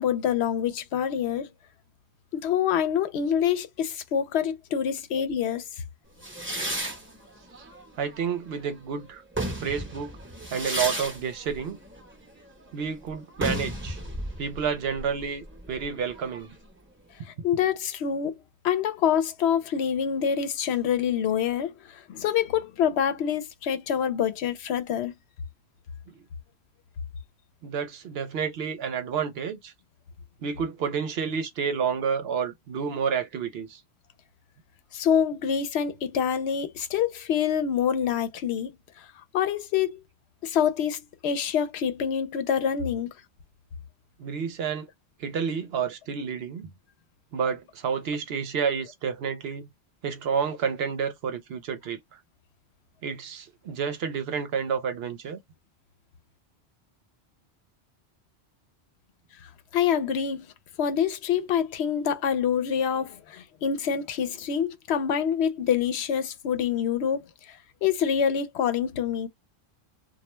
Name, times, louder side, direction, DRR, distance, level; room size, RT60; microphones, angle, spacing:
voice 1, 0.0-1.5 2.3-5.6 17.4-18.4 18.6-25.1 34.9-38.7 39.3-40.0 40.4-43.1 59.7-60.5 60.8-67.2 67.8-69.3, left 8 dB, 80° left, 0.8 m, -26 dB
sound 1, 6.2-8.7 9.1-16.7, right 1 dB, 15° right, 0.7 m, -34 dB
voice 2, 8.0-9.2 9.6-10.2 10.5-11.8 12.7-14.0 14.4-16.5 27.6-29.7 30.4-33.8 44.2-44.9 45.2-46.7 47.3-49.7 50.0-52.0 53.0-55.4, right 6 dB, 70° right, 0.8 m, -30 dB
2.2 x 2.1 x 3.0 m
omnidirectional pair, 1.1 m